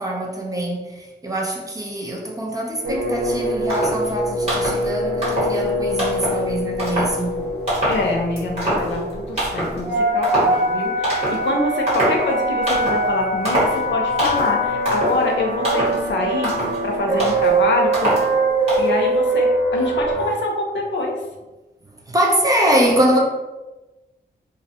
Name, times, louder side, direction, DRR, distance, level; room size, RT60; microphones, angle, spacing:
voice 1, 0.0-7.6 13.5-13.6 21.8-23.2, right 1 dB, 20° right, -1 dB, 0.4 m, -23 dB
sound 1, 2.8-20.3, right 1 dB, 65° right, 1.0 m, -23 dB
sound 2, 3.3-3.4 3.7-4.1 4.4-4.8 5.2-5.6 6.0-6.4 6.8-7.2 7.7-8.1 8.4-9.1 9.4-9.8 10.2-10.6 11.0-11.5 11.9-12.3 12.7-13.1 13.4-13.8 14.2-14.6 14.8-15.2 15.6-16.0 16.4-16.8 17.2-17.5 17.9-18.3 18.7-18.9, right 1 dB, 35° right, 1.3 m, -23 dB
voice 2, 7.9-16.5 16.8-18.1 18.8-21.1, left 2 dB, 90° left, 0 dB, 0.5 m, -25 dB
2.4 x 2.1 x 2.7 m, 1.1 s
wide cardioid pair, 160°, 18 cm